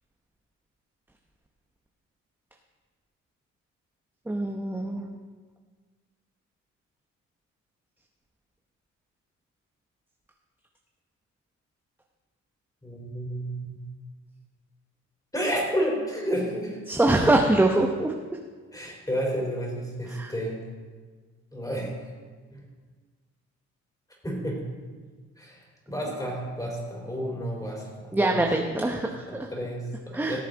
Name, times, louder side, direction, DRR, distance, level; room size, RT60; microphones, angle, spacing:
voice 1, 4.3-5.1 16.9-18.1 20.1-20.3 28.1-29.2 30.1-30.4, right 2 dB, 5° right, 2 dB, 0.9 m, -23 dB
voice 2, 12.8-13.8 15.3-16.8 18.7-20.6 21.5-22.1 22.5-22.6 24.2-24.6 25.4-25.6 25.9-28.4 29.0-30.4, equal, 10° left, -1 dB, 3.8 m, -31 dB
18.0 x 7.0 x 3.9 m, 1.5 s
cardioid pair, 90°, 30 cm